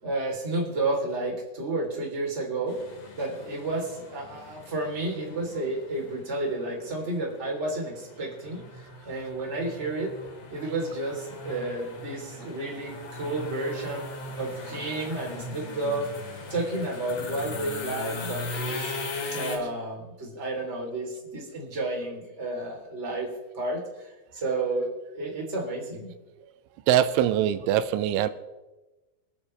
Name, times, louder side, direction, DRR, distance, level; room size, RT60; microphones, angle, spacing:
voice 1, 0.0-2.8 3.2-10.1 10.5-14.1 14.4-16.1 16.5-18.9 19.3-23.3 23.5-24.9 25.1-26.1, right 2 dB, 15° right, 2.8 m, -31 dB
sound 1, 2.7-19.6, left 2 dB, 60° left, 4.3 m, -39 dB
voice 2, 26.9-28.3, right 11 dB, 90° right, 3.1 m, -22 dB
26.0 x 10.0 x 3.3 m
omnidirectional pair, 5.4 m